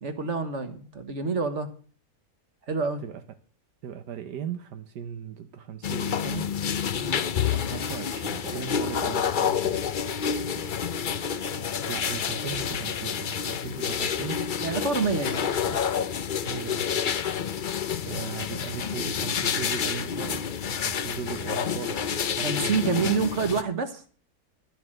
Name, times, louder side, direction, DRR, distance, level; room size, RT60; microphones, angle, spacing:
voice 1, 0.0-1.7 2.7-3.0 7.0-7.2 14.6-15.8 22.4-24.0, right 5 dB, 45° right, 9 dB, 1.8 m, -28 dB
voice 2, 3.8-6.5 7.5-9.8 11.8-14.5 16.4-16.9 18.0-23.2, right 8 dB, 80° right, 8 dB, 1.5 m, -38 dB
sound 1, 5.8-23.6, left 7 dB, 55° left, 0.5 m, -29 dB
12.5 x 7.8 x 7.8 m, 0.42 s
omnidirectional pair, 1.7 m